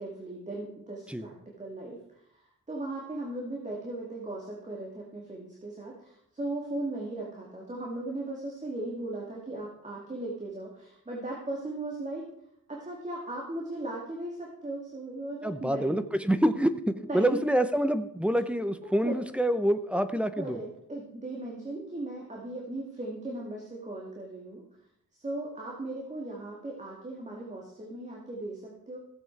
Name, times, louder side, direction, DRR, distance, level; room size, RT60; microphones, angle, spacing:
voice 1, 0.0-2.0 2.7-12.3 12.7-16.0 17.0-17.4 18.8-19.2 20.4-24.6 25.2-29.0, right 2 dB, 20° right, -2 dB, 2.2 m, -37 dB
voice 2, 15.4-20.6, right 1 dB, 5° right, 10 dB, 0.7 m, -27 dB
15.5 x 7.9 x 4.6 m, 0.73 s
wide cardioid pair, 125°, 33 cm